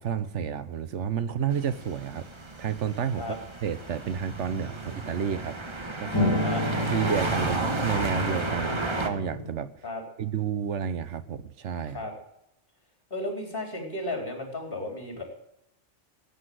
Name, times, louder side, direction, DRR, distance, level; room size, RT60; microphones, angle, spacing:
voice 1, 0.0-2.3 2.6-3.2 3.6-5.6 6.0-6.5 6.9-9.7 10.2-12.1, right 7 dB, 80° right, 14 dB, 1.2 m, -30 dB
sound 1, 1.5-9.1, right 2 dB, 25° right, 1.3 m, -33 dB
sound 2, 4.3-5.4 6.1-9.5, left 1 dB, 20° left, 3.2 m, -31 dB
voice 2, 8.5-9.0 9.8-10.0 11.9-12.1 13.1-15.2, left 2 dB, 50° left, 3 dB, 4.1 m, -34 dB
16.0 x 8.5 x 7.7 m, 0.80 s
omnidirectional pair, 1.2 m